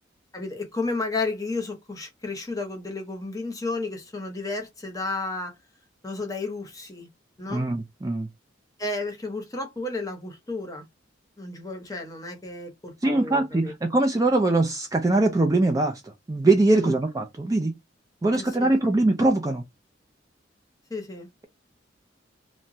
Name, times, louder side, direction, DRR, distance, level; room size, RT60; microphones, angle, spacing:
voice 1, 0.3-5.5 6.0-7.1 7.4-7.6 8.8-10.8 11.4-13.7 16.7-17.0 18.3-18.7 20.9-21.3, left 3 dB, 20° left, 0.8 m, -32 dB
voice 2, 7.5-8.3 13.0-17.7 18.2-19.6, right 2 dB, 20° right, 0.4 m, -22 dB
2.9 x 2.2 x 2.6 m
head